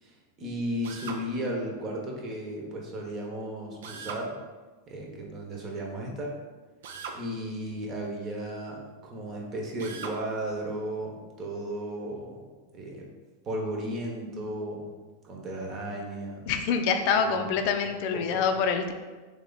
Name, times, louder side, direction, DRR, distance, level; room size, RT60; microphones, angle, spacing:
voice 1, 0.0-4.4 4.9-6.3 7.1-12.4 12.7-13.1 13.4-14.9 15.2-16.5 17.1-17.5 17.8-18.5, right 1 dB, 35° right, -1 dB, 1.1 m, -35 dB
Drill, 0.8-1.2 3.8-4.3 6.8-7.2 9.8-10.2, right 5 dB, 80° right, 0.6 m, -39 dB
voice 2, 16.5-18.9, left 6 dB, 55° left, 6 dB, 0.5 m, -26 dB
3.4 x 3.1 x 4.0 m, 1.3 s
hypercardioid pair, 125°, 0 cm